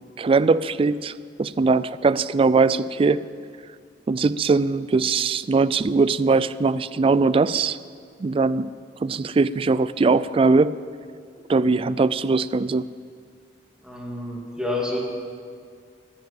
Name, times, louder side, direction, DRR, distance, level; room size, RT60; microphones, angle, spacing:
voice 1, 0.2-1.1 1.4-3.2 4.1-7.8 8.2-8.7 9.0-10.7 11.5-12.9, right 4 dB, 30° right, 16 dB, 0.3 m, -20 dB
voice 2, 13.8-15.0, left 2 dB, 5° right, -2 dB, 2.3 m, -28 dB
11.0 x 10.0 x 8.9 m, 2.2 s
head